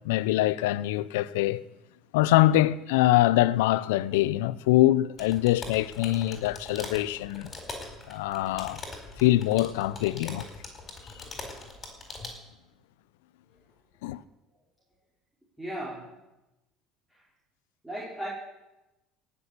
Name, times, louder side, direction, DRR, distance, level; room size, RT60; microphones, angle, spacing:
voice 1, 0.0-1.6 2.1-7.5 8.1-8.8 9.2-10.5 14.0-14.2, left 15 dB, 85° left, 0.5 m, -24 dB
sound 1, 5.2-12.4, left 3 dB, 30° left, 4.5 m, -42 dB
voice 2, 15.6-16.2 17.1-17.2 17.8-18.3, right 1 dB, 5° right, 5.2 m, -36 dB
18.0 x 7.0 x 8.4 m
supercardioid pair, 95°, 0 cm